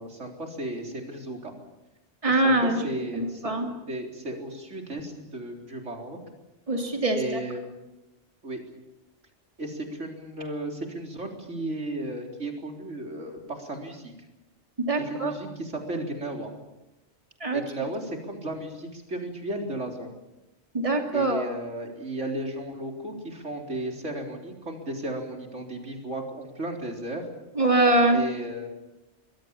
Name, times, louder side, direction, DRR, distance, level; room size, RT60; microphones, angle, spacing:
voice 1, 0.0-1.5 2.3-3.5 3.9-6.2 7.1-7.6 8.4-8.6 9.6-14.1 15.0-16.5 17.5-20.1 21.1-27.3 28.1-28.7, right 1 dB, 90° right, 2 dB, 4.3 m, -34 dB
voice 2, 2.2-2.8 3.1-3.7 6.7-7.4 14.9-15.3 17.4-17.6 20.7-21.4 27.6-28.2, right 2 dB, 30° right, 3 dB, 2.8 m, -23 dB
25.5 x 22.5 x 7.2 m, 0.95 s
omnidirectional pair, 1.2 m